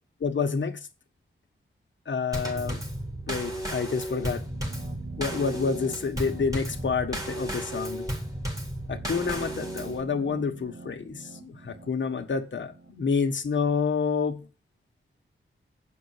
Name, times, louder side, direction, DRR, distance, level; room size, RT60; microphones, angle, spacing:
voice 1, 0.2-0.8 2.1-2.8 3.3-4.4 5.2-8.1 8.9-14.4, left 5 dB, 65° left, 1.4 m, -28 dB
Drum kit / Snare drum / Bass drum, 2.3-10.0, equal, 15° right, 3.6 m, -34 dB
sound 1, 4.4-13.3, right 4 dB, 60° right, 2.2 m, -46 dB
8.1 x 5.6 x 6.6 m
wide cardioid pair, 75°, 21 cm